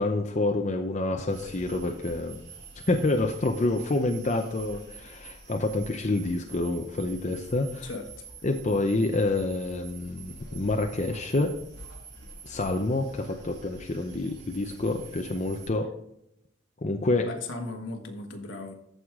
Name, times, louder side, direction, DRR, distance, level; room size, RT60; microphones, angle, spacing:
voice 1, 0.0-2.4 2.9-7.9 8.4-11.5 12.4-15.9 16.8-17.3, left 2 dB, 35° left, 0.6 m, -27 dB
sound 1, 1.3-15.7, right 3 dB, 55° right, 2.2 m, -46 dB
voice 2, 7.8-8.2 17.2-18.7, left 2 dB, 70° left, 1.5 m, -37 dB
14.0 x 4.8 x 3.7 m
head